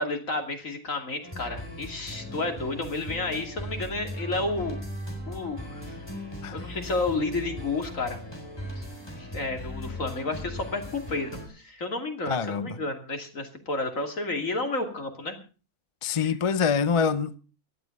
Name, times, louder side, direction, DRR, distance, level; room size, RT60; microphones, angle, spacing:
voice 1, 0.0-4.8 5.2-6.0 6.5-8.2 8.8-8.9 9.2-15.3 16.1-16.3, left 2 dB, 60° left, 3.1 m, -31 dB
sound 1, 1.2-11.5, left 1 dB, 15° left, 4.3 m, -38 dB
voice 2, 12.3-12.8 16.0-17.4, left 6 dB, 35° left, 0.5 m, -25 dB
17.0 x 11.5 x 5.4 m
omnidirectional pair, 1.6 m